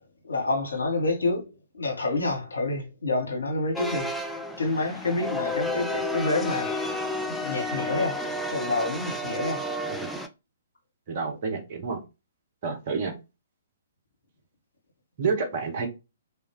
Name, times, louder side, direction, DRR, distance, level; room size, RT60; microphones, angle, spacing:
voice 1, 0.2-4.1 4.6-6.7 7.3-8.2 8.5-9.7, left 2 dB, 65° left, 1.4 m, -28 dB
sound 1, 3.7-10.3, left 1 dB, ahead, 0.4 m, -31 dB
voice 2, 11.1-12.0 12.6-13.1 15.2-15.9, right 5 dB, 35° right, 1.1 m, -29 dB
3.4 x 2.7 x 3.0 m
figure-of-eight pair, 120°, 0 cm